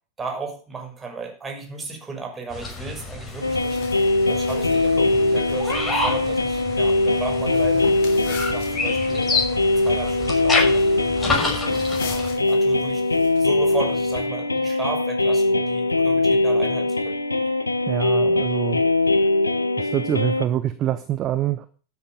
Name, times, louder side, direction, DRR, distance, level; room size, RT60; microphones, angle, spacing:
voice 1, 0.2-11.0 11.5-17.2, right 4 dB, 15° right, 3 dB, 6.0 m, -35 dB
sound 1, 2.5-12.4, left 3 dB, 15° left, 6.1 m, -29 dB
sound 2, 3.3-14.3, left 7 dB, 50° left, 3.5 m, -43 dB
sound 3, 3.4-20.4, left 2 dB, 80° left, 1.2 m, -21 dB
voice 2, 17.9-18.8 19.8-21.7, right 11 dB, 30° right, 12 dB, 1.1 m, -25 dB
13.0 x 9.2 x 7.0 m, 0.39 s
figure-of-eight pair, 90°, 0 cm